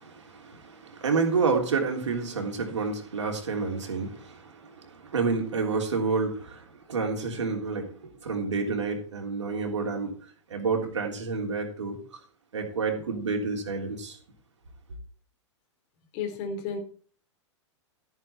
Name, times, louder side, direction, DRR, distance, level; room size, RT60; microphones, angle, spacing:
voice 1, 0.0-10.1 10.5-12.2 12.5-14.2, right 4 dB, 70° right, 3.3 m, -29 dB
voice 2, 16.1-16.8, left 5 dB, 45° left, 3.7 m, -32 dB
14.0 x 9.1 x 4.5 m
figure-of-eight pair, 100°, 16 cm